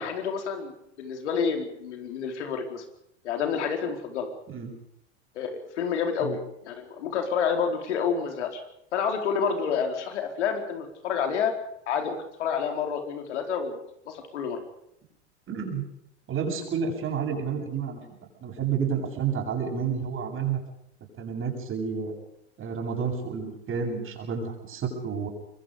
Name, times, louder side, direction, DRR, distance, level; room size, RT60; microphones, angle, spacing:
voice 1, 0.0-2.8 3.2-4.3 5.3-8.6 8.9-11.5 11.9-13.8 14.1-14.6, left 6 dB, 75° left, 5 dB, 4.5 m, -29 dB
voice 2, 15.5-15.8 16.3-18.0 18.4-20.6 21.2-22.1 22.6-25.3, right 6 dB, 35° right, 3 dB, 7.9 m, -30 dB
25.0 x 22.5 x 5.2 m, 0.75 s
hypercardioid pair, 90°, 35 cm